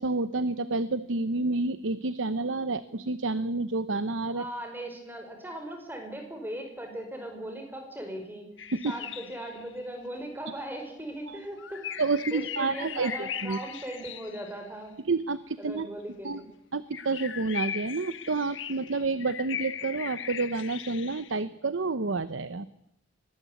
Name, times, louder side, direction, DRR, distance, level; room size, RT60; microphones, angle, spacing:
voice 1, 0.0-4.4 8.7-8.9 11.3-11.4 12.0-13.6 15.1-15.9 16.2-16.4 16.7-22.7, right 3 dB, 75° right, 14 dB, 0.9 m, -29 dB
voice 2, 4.3-8.5 8.8-11.8 12.3-15.0 15.6-16.5, right 1 dB, 10° right, 4 dB, 5.4 m, -38 dB
sound 1, 8.6-9.8 11.6-14.6 16.9-21.4, left 8 dB, 70° left, 1.3 m, -39 dB
23.0 x 19.5 x 8.4 m, 0.80 s
head